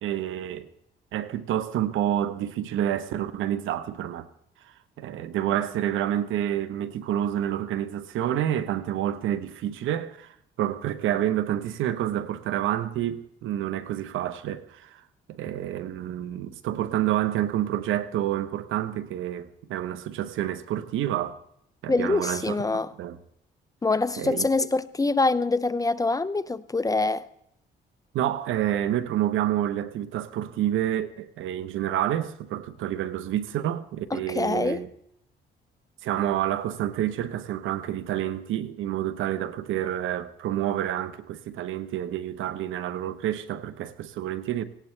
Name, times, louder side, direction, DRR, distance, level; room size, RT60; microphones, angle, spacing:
voice 1, 0.0-0.7 1.1-4.3 5.0-15.0 15.3-21.4 21.8-22.6 23.0-23.2 24.2-24.4 28.1-34.9 36.0-44.6, right 11 dB, 85° right, 1.0 m, -28 dB
voice 2, 21.9-22.9 23.8-27.2 34.1-34.8, left 3 dB, 15° left, 0.6 m, -25 dB
18.0 x 18.0 x 3.3 m
cardioid pair, 90°, 20 cm